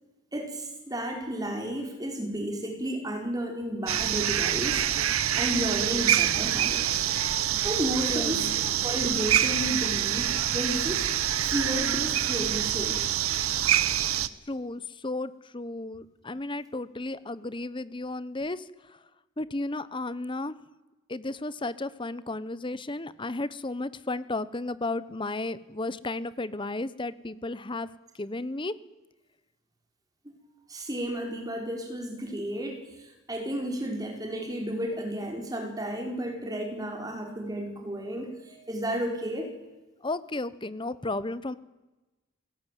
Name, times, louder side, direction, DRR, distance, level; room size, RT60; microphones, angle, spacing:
voice 1, 0.3-7.0 7.6-8.5 8.8-11.1 11.4-13.0 30.2-30.4 30.7-39.5, equal, 20° right, 2 dB, 4.7 m, -32 dB
sound 1, 3.9-14.3, right 11 dB, 85° right, 1.1 m, -26 dB
voice 2, 8.1-8.6 14.5-18.6 19.4-20.6 21.1-27.9 28.2-28.7 40.0-41.5, left 2 dB, 25° left, 16 dB, 0.9 m, -33 dB
28.5 x 18.0 x 9.2 m, 1.1 s
head